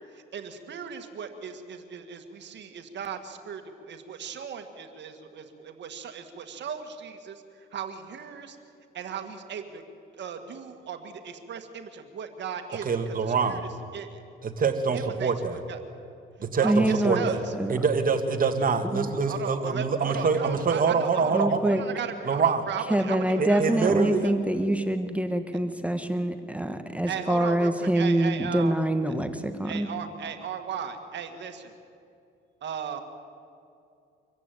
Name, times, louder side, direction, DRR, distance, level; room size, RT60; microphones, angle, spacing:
voice 1, 0.1-7.4 7.7-8.6 8.9-9.8 10.2-14.2 14.9-15.8 16.6-17.5 19.3-21.4 21.7-24.3 27.1-28.7 29.6-31.7 32.6-33.0, right 7 dB, 65° right, 7 dB, 1.9 m, -36 dB
voice 2, 12.8-13.6 14.4-15.6 16.4-17.4 17.7-21.6 22.3-22.6 23.4-24.2, right 5 dB, 45° right, 6 dB, 2.0 m, -25 dB
voice 3, 16.6-17.2 17.6-17.7 18.9-19.1 21.3-21.8 22.9-29.9, right 1 dB, 5° right, 8 dB, 1.3 m, -25 dB
25.0 x 14.5 x 9.2 m, 2.5 s
cardioid pair, 90°, 20 cm